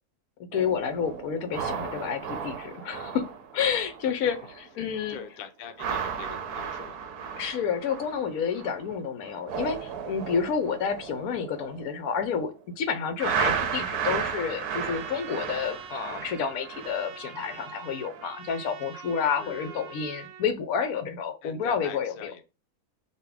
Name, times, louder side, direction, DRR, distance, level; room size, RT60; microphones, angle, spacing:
voice 1, 0.4-5.2 7.4-22.3, left 6 dB, 70° left, 8 dB, 1.1 m, -30 dB
sound 1, 0.5-4.7 4.9-5.2 5.7-8.9 9.2-12.5 13.2-17.7 18.1-18.3, right 7 dB, 85° right, 1.2 m, -34 dB
voice 2, 5.1-7.1 19.4-20.0 21.4-22.5, left 7 dB, 85° left, 7 dB, 0.4 m, -43 dB
Trumpet, 14.7-20.5, right 7 dB, 70° right, 1.0 m, -44 dB
4.0 x 2.3 x 3.4 m, 0.29 s
omnidirectional pair, 1.6 m